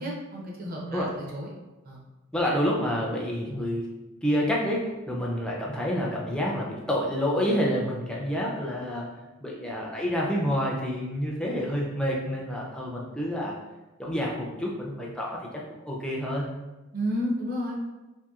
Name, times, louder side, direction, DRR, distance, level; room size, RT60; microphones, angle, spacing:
voice 1, 0.0-1.5 1.9-2.0 16.9-17.8, equal, 40° right, -3 dB, 0.6 m, -31 dB
voice 2, 2.3-3.9 4.2-9.1 9.4-13.5 14.0-16.5, equal, 5° left, -3 dB, 0.3 m, -28 dB
2.8 x 2.6 x 2.4 m, 1.1 s
head